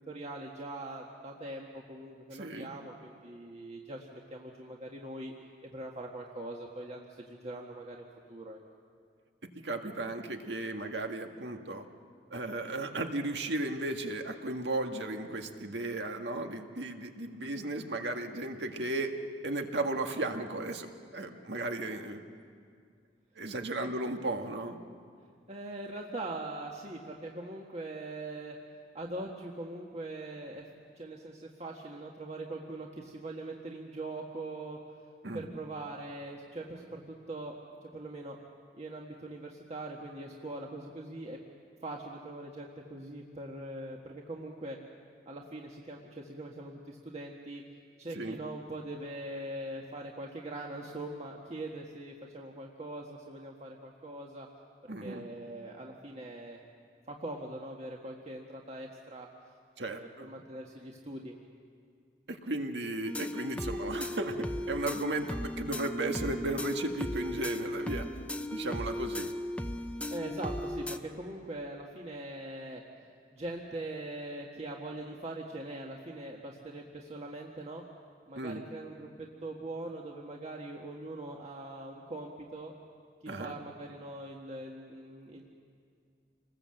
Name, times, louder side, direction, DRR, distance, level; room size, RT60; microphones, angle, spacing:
voice 1, 0.0-5.3 5.7-7.0 7.3-8.6 23.8-23.9 25.5-28.6 28.9-30.7 31.0-34.8 35.3-37.6 37.8-38.4 38.7-41.4 41.8-44.8 45.3-47.6 48.0-54.5 55.0-56.6 57.1-59.3 59.8-61.3 69.9-72.8 73.3-77.8 78.3-82.7 83.2-85.5, right 2 dB, 40° right, -1 dB, 1.6 m, -42 dB
voice 2, 2.3-2.7 9.6-11.8 12.3-19.1 19.4-22.2 23.4-24.8 35.2-35.5 48.1-48.4 54.9-55.3 59.8-60.3 62.3-68.1 68.5-69.3 78.3-78.6 83.3-83.6, right 2 dB, 75° right, 4 dB, 1.8 m, -35 dB
sound 1, 63.0-71.0, left 1 dB, 5° left, 0.8 m, -37 dB
28.0 x 20.5 x 7.8 m, 2.2 s
head